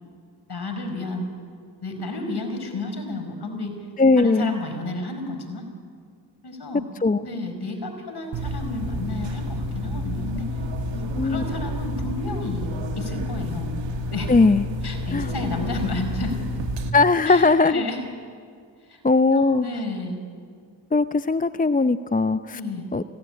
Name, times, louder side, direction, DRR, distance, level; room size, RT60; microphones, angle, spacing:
voice 1, 0.5-1.3 1.8-3.9 4.2-5.7 6.4-6.8 7.2-10.5 10.9-12.7 13.0-13.7 14.1-14.3 14.8-16.4 17.2-18.0 18.9-19.0 19.3-20.2 22.5-22.9, left 2 dB, 55° left, 6 dB, 5.0 m, -32 dB
voice 2, 4.0-4.5 7.0-7.2 11.2-11.4 14.3-14.6 15.1-15.3 16.9-17.8 19.0-19.7 20.9-22.6 22.9-23.0, left 3 dB, 20° left, 12 dB, 0.6 m, -19 dB
sound 1, 8.3-16.9, left 1 dB, 65° right, 2.0 m, -29 dB
21.5 x 17.0 x 9.9 m, 2.2 s
supercardioid pair, 40°, 47 cm